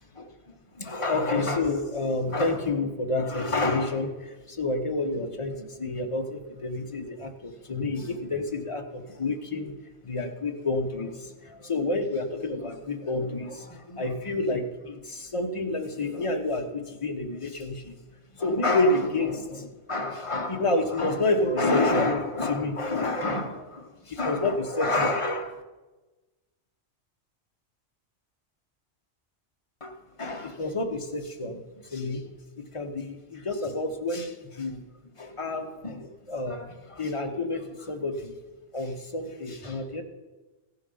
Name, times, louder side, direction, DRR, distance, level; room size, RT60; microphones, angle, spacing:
voice 1, 0.8-9.7 10.0-18.0 18.3-25.6 29.8-31.6 31.9-32.3 32.7-34.9 35.2-38.3 38.7-40.0, left 2 dB, 30° left, 0.9 m, -29 dB
15.0 x 6.8 x 5.5 m
omnidirectional pair, 1.2 m